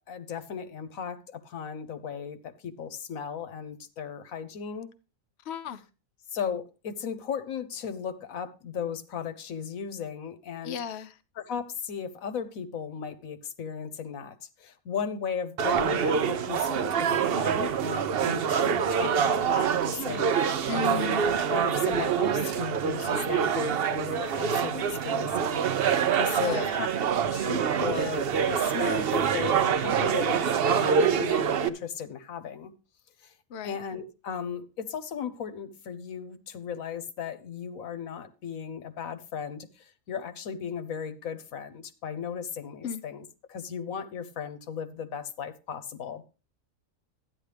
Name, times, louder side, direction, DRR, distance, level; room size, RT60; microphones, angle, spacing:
voice 1, 0.1-4.9 6.3-10.8 11.3-21.1 21.4-26.9 27.3-30.4 30.7-32.7 33.2-33.3 33.6-46.2, left 7 dB, 80° left, 1.2 m, -36 dB
voice 2, 5.5-5.8 10.6-11.1 20.7-21.2 26.4-26.8 33.5-33.8 42.8-43.0, left 7 dB, 60° left, 0.9 m, -34 dB
sound 1, 15.6-31.7, right 7 dB, 55° right, 0.8 m, -26 dB
13.0 x 9.6 x 3.3 m
omnidirectional pair, 1.4 m